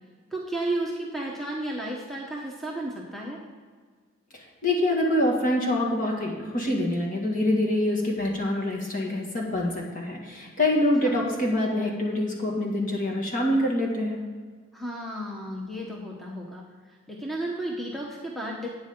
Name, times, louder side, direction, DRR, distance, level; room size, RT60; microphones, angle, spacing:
voice 1, 0.3-3.4 14.7-16.7 17.1-18.7, right 1 dB, ahead, -2 dB, 1.0 m, -33 dB
voice 2, 4.3-14.2, left 1 dB, 40° left, -1 dB, 2.0 m, -25 dB
12.5 x 8.8 x 3.8 m, 1.5 s
head